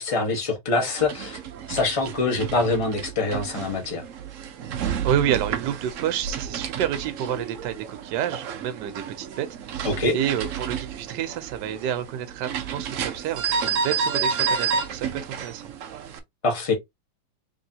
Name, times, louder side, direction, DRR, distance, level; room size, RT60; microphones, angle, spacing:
voice 1, 0.0-1.4 1.7-4.0 9.8-10.1 16.4-16.7, left 3 dB, 20° left, 0.9 m, -24 dB
sound 1, 0.9-16.2, right 7 dB, 85° right, 0.7 m, -31 dB
voice 2, 5.0-15.6, right 10 dB, 70° right, 1.2 m, -29 dB
3.6 x 3.4 x 2.7 m
omnidirectional pair, 2.1 m